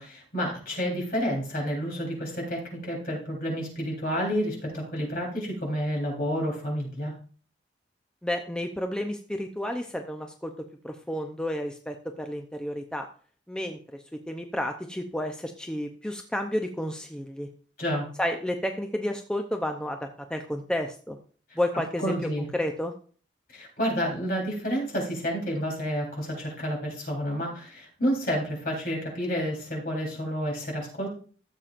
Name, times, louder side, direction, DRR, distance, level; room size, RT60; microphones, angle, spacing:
voice 1, 0.0-7.1 17.8-18.1 21.5-21.6 22.0-22.5 23.5-31.1, equal, 50° left, -2 dB, 3.9 m, -30 dB
voice 2, 8.2-10.5 10.8-13.1 13.5-13.8 14.3-17.5 18.2-21.2 21.6-22.2 22.5-22.9, left 1 dB, 5° left, 4 dB, 0.6 m, -31 dB
14.0 x 7.4 x 2.5 m, 0.43 s
head